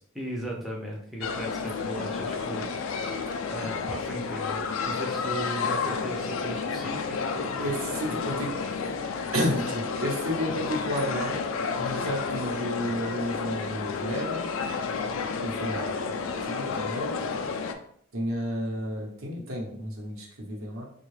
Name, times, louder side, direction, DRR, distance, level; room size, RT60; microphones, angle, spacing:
voice 1, 0.1-3.1 3.5-7.6 8.1-9.0 14.8-15.2, right 1 dB, ahead, -4 dB, 0.5 m, -37 dB
sound 1, 1.2-17.7, left 5 dB, 65° left, 0.3 m, -31 dB
voice 2, 7.6-8.5 9.3-11.4 11.8-14.5 15.4-17.1 18.1-20.9, equal, 75° right, -1 dB, 0.9 m, -32 dB
3.5 x 2.3 x 3.2 m, 0.66 s
head